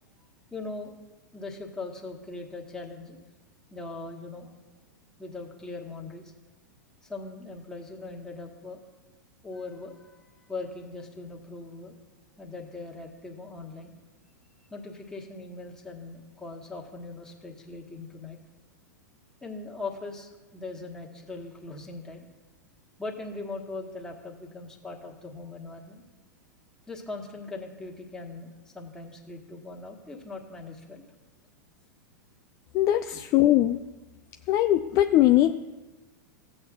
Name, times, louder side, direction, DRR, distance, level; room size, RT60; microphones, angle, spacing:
voice 1, 0.5-0.9 1.3-3.2 3.7-4.5 5.2-6.3 7.0-8.9 9.4-11.9 12.4-13.9 14.7-18.4 19.4-22.3 23.0-26.0 26.9-31.0 33.1-33.2 34.4-34.5, left 3 dB, 5° left, -1 dB, 1.6 m, -40 dB
voice 2, 32.7-33.8 34.5-35.5, left 13 dB, 35° left, 7 dB, 0.4 m, -21 dB
15.5 x 7.7 x 2.4 m, 1.2 s
figure-of-eight pair, 100°, 10 cm